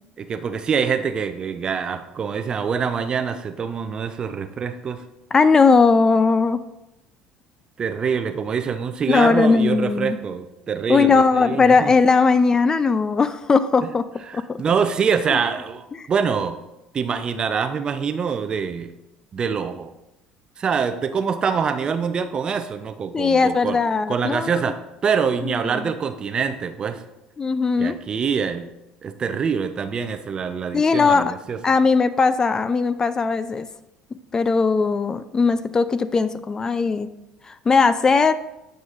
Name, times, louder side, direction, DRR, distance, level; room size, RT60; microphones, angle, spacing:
voice 1, 0.2-5.0 7.8-11.9 13.8-13.9 14.3-16.6 16.9-18.9 19.3-19.9 20.6-23.8 24.1-24.8 25.0-27.0 27.8-28.7 29.0-31.6, right 6 dB, 40° right, 9 dB, 0.5 m, -25 dB
voice 2, 5.3-6.6 9.1-10.2 10.9-14.1 14.3-14.6 15.3-15.4 15.9-16.1 23.1-24.7 25.4-25.9 27.4-28.0 30.7-31.3 31.6-33.7 34.3-37.1 37.5-38.4, left 4 dB, 25° left, 13 dB, 0.3 m, -19 dB
7.9 x 5.2 x 2.5 m, 0.90 s
hypercardioid pair, 70°, 2 cm